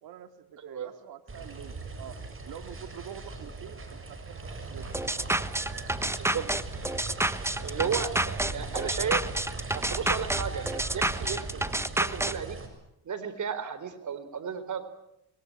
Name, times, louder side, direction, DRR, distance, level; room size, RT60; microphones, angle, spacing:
voice 1, 0.0-4.9, right 9 dB, 65° right, 9 dB, 2.5 m, -46 dB
sound 1, 1.3-12.7, right 3 dB, 35° right, 7.0 m, -39 dB
sound 2, 4.9-12.3, right 1 dB, 5° right, 1.2 m, -29 dB
voice 2, 7.6-9.2 9.7-12.6 13.0-14.9, right 7 dB, 50° right, 11 dB, 4.2 m, -34 dB
25.5 x 22.5 x 8.8 m, 0.83 s
supercardioid pair, 75°, 39 cm